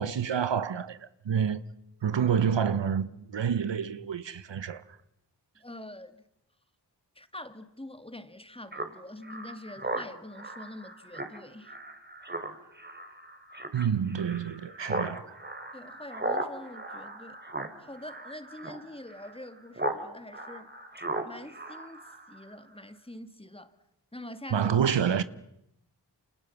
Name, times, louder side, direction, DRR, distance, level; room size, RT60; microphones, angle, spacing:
voice 1, 0.0-1.6 2.0-4.8 13.7-15.2 24.5-25.2, right 7 dB, 80° right, 1.2 m, -28 dB
voice 2, 5.6-6.2 7.2-11.8 15.7-17.4 17.8-20.7 21.2-23.8 24.1-24.7, left 1 dB, 15° left, 2.1 m, -45 dB
Speech synthesizer, 8.7-20.0 20.3-22.5, right 1 dB, 25° right, 3.2 m, -37 dB
28.5 x 27.5 x 7.2 m
cardioid pair, 50°, 43 cm